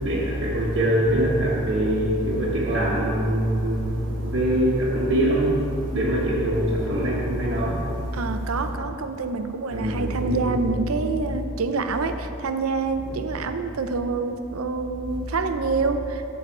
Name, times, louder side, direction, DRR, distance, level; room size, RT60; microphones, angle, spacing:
voice 1, 0.0-8.2 9.7-10.6, right 1 dB, 55° right, -7 dB, 1.2 m, -23 dB
voice 2, 8.1-16.3, right 4 dB, 85° right, 8 dB, 0.6 m, -27 dB
11.0 x 4.0 x 7.2 m, 3.0 s
head